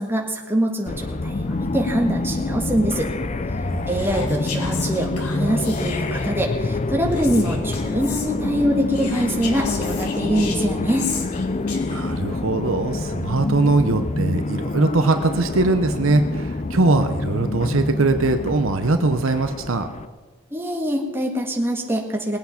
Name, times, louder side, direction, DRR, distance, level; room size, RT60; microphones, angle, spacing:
voice 1, 0.0-3.1 3.9-11.1 20.5-22.4, equal, 10° right, 0 dB, 1.6 m, -24 dB
sound 1, 0.9-20.1, left 2 dB, 30° left, 0.5 m, -27 dB
Whispering, 3.9-6.4 7.1-8.3 8.9-12.2, left 5 dB, 85° left, 1.7 m, -34 dB
voice 2, 11.9-19.9, right 3 dB, 60° right, 8 dB, 0.8 m, -21 dB
20.0 x 8.2 x 5.8 m, 1.3 s
head